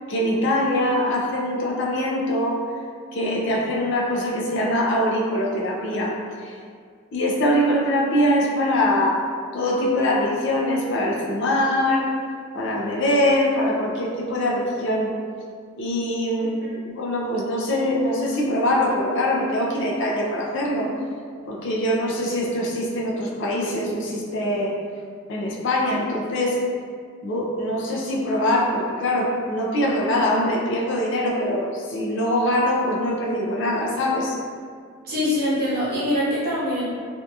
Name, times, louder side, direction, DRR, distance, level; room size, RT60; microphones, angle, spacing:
voice 1, 0.1-2.6 3.1-6.5 7.1-9.3 9.5-12.1 12.5-15.1 15.8-20.9 21.5-24.8 25.3-26.6 27.2-34.4, left 1 dB, 55° left, -3 dB, 0.4 m, -23 dB
voice 2, 35.0-36.8, left 1 dB, 45° right, -9 dB, 0.9 m, -23 dB
2.6 x 2.5 x 2.3 m, 2.1 s
head